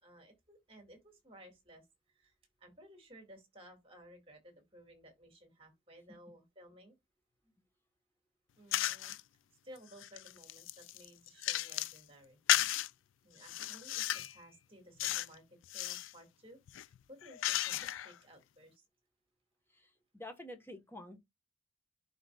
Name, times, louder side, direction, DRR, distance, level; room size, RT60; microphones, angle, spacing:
voice 1, 0.0-2.3 2.6-6.9 7.4-7.5 8.6-9.2 9.6-12.4 13.2-18.8, equal, 30° right, 2.1 m, -57 dB
sound 1, 8.7-9.2 9.8-12.0 12.5-12.9 13.4-14.4 15.0-15.3 15.6-16.1 16.7-18.1, left 13 dB, 75° left, 0.4 m, -34 dB
voice 2, 19.7-21.2, left 1 dB, 10° left, 1.1 m, -49 dB
11.5 x 4.0 x 2.3 m
head